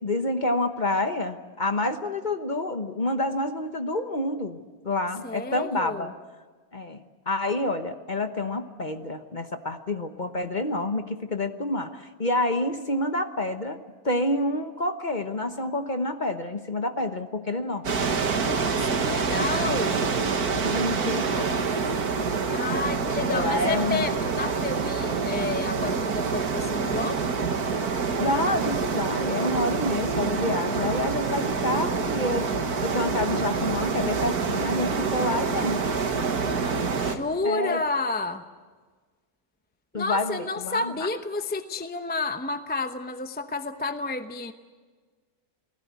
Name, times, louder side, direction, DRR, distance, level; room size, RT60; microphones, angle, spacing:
voice 1, 0.0-4.6 4.8-6.1 6.7-18.0 20.6-21.5 23.2-24.1 28.2-32.5 32.8-35.8 37.4-37.8 39.9-40.9, left 2 dB, 30° left, 7 dB, 1.0 m, -28 dB
voice 2, 5.2-6.1 18.3-20.0 22.5-27.2 37.0-38.4 39.9-44.5, left 3 dB, 10° left, 8 dB, 0.5 m, -30 dB
sound 1, 17.8-37.2, right 5 dB, 60° right, 2.0 m, -26 dB
28.0 x 19.0 x 8.3 m, 1.4 s
omnidirectional pair, 1.9 m